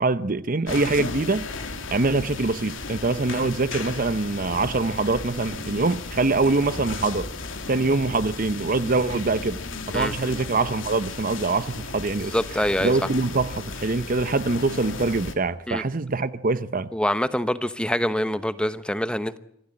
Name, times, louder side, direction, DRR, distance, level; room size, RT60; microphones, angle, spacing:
voice 1, 0.0-1.5 1.9-7.3 7.7-9.6 9.9-12.3 12.8-16.9, right 3 dB, 45° right, 0.8 m, -24 dB
sound 1, 0.7-15.3, left 3 dB, 90° left, 2.7 m, -35 dB
voice 2, 12.3-13.1 15.7-15.8 16.9-19.4, left 1 dB, 5° left, 1.0 m, -25 dB
25.5 x 16.0 x 8.7 m
head